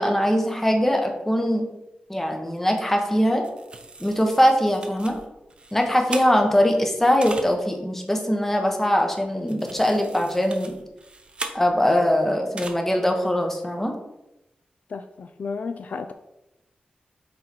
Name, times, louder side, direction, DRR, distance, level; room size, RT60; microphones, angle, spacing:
voice 1, 0.0-1.7 2.1-3.5 4.0-5.2 5.7-10.8 11.5-13.9, equal, 10° left, 3 dB, 0.9 m, -21 dB
sound 1, 3.0-3.1 3.4-6.7 7.2-7.5 9.0-9.1 9.5-12.0 12.6-12.7, right 3 dB, 35° right, 0.7 m, -38 dB
voice 2, 14.9-16.1, left 4 dB, 55° left, 8 dB, 0.3 m, -32 dB
6.2 x 4.3 x 4.5 m, 0.93 s
wide cardioid pair, 155°, 3 cm